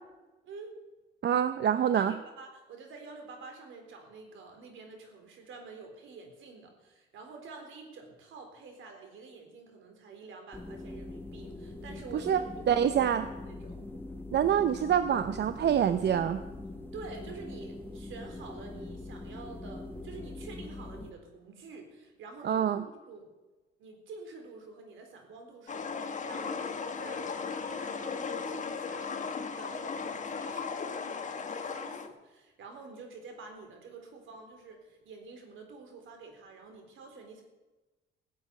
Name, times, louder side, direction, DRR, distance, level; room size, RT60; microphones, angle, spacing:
voice 1, 1.2-2.1 12.1-12.4 12.7-13.2 14.3-16.4 22.4-22.8, right 9 dB, 60° right, 10 dB, 0.8 m, -26 dB
voice 2, 1.9-12.5 12.7-12.8 13.4-13.8 16.9-23.3 23.8-29.1 29.6-37.4, right 4 dB, 80° right, 4 dB, 4.0 m, -48 dB
sound 1, 10.5-21.1, left 2 dB, 10° left, 1.6 m, -43 dB
sound 2, 25.7-32.1, left 5 dB, 40° left, 1.6 m, -36 dB
16.5 x 8.1 x 9.3 m, 1.1 s
cardioid pair, 90°, 20 cm